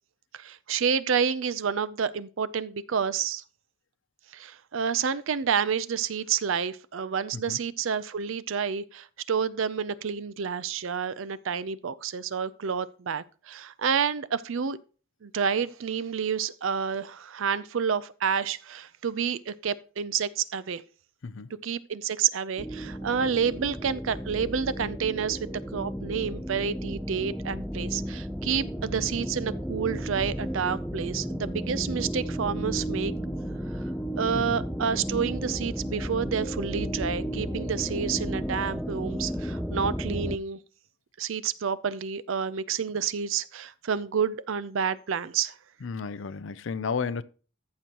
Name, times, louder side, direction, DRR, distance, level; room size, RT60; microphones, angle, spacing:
voice 1, 0.3-3.4 4.3-14.8 15.2-20.8 21.6-25.4 25.7-33.1 34.2-40.6 41.2-45.5, right 6 dB, 65° right, 0.5 m, -29 dB
voice 2, 21.2-21.6 34.3-34.6 45.8-47.2, left 5 dB, 60° left, 0.5 m, -33 dB
sound 1, 22.6-40.4, equal, ahead, 0.4 m, -33 dB
14.0 x 6.2 x 2.9 m
head